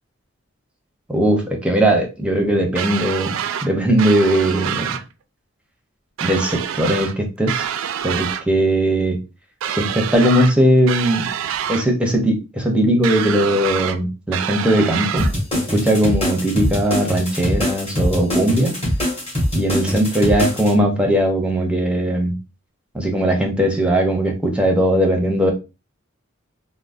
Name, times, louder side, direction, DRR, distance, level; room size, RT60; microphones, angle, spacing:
voice 1, 1.1-3.4 3.6-4.9 6.2-7.6 8.0-9.2 9.7-11.3 11.7-15.3 15.5-18.8 19.5-22.4 22.9-25.5, right 1 dB, 5° right, 1 dB, 0.6 m, -19 dB
sound 1, 2.8-3.7 4.0-5.0 6.2-7.1 7.5-8.4 9.6-10.5 10.9-11.9 13.0-14.0 14.3-15.3, right 9 dB, 70° right, 0.3 m, -26 dB
sound 2, 15.2-20.7, left 1 dB, 30° left, 1.4 m, -22 dB
3.6 x 2.0 x 2.4 m, 0.29 s
head